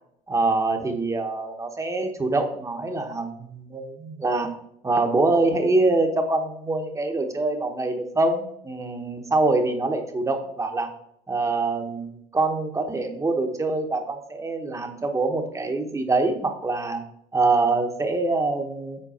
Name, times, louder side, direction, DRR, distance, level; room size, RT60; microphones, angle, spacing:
voice 1, 0.3-4.5 4.8-10.9 11.3-17.0 17.3-19.0, right 3 dB, 15° right, 5 dB, 1.0 m, -24 dB
7.7 x 4.5 x 4.2 m, 0.73 s
cardioid pair, 105°, 17 cm